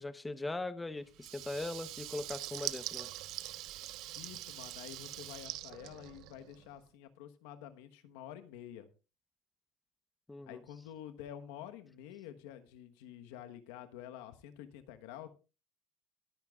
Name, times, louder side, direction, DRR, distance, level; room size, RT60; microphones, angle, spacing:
voice 1, 0.0-3.1 10.3-10.6, left 2 dB, 15° left, 12 dB, 1.0 m, -40 dB
Water tap faucet / Liquid, 1.1-6.6, right 15 dB, 65° right, 0.7 m, -43 dB
voice 2, 4.1-8.9 10.4-15.3, left 11 dB, 85° left, 8 dB, 1.2 m, -49 dB
21.5 x 9.2 x 2.4 m, 0.33 s
supercardioid pair, 105°, 0 cm